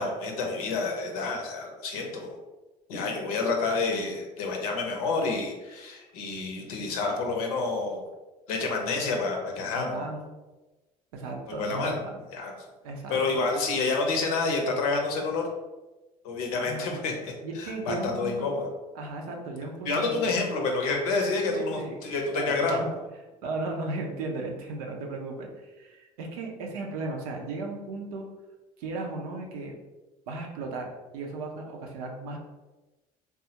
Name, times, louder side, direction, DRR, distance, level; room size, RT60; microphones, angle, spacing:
voice 1, 0.0-2.4 2.9-8.1 8.5-10.1 11.5-12.0 12.3-12.5 13.1-15.5 16.2-18.7 19.9-22.8, left 3 dB, 85° left, 2 dB, 0.6 m, -28 dB
voice 2, 9.7-10.3 11.1-12.2 12.8-13.4 16.6-17.0 17.4-18.5 18.9-20.3 21.4-22.0 22.3-22.9 23.4-28.3 28.8-29.7 30.3-32.4, right 3 dB, 85° right, 1 dB, 0.6 m, -36 dB
3.5 x 2.0 x 2.8 m, 1.1 s
hypercardioid pair, 65°, 18 cm